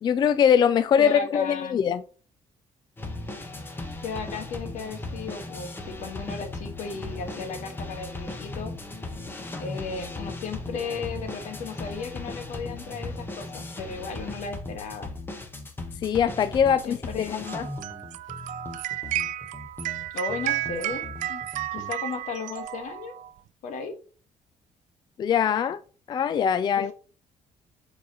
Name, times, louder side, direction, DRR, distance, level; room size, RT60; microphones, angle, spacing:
voice 1, 0.0-2.0 16.0-17.0 17.5-17.7 25.2-25.8 26.1-26.9, left 8 dB, 35° left, 0.3 m, -22 dB
voice 2, 1.0-1.8 4.0-8.7 9.6-15.1 16.8-17.6 20.1-21.4 21.7-23.2 23.6-23.9 26.8-26.9, left 5 dB, 80° left, 1.5 m, -35 dB
sound 1, 3.0-21.9, left 2 dB, 15° left, 1.0 m, -37 dB
sound 2, 17.5-23.3, right 14 dB, 85° right, 0.4 m, -32 dB
7.0 x 4.8 x 2.9 m
cardioid pair, 150°, 12 cm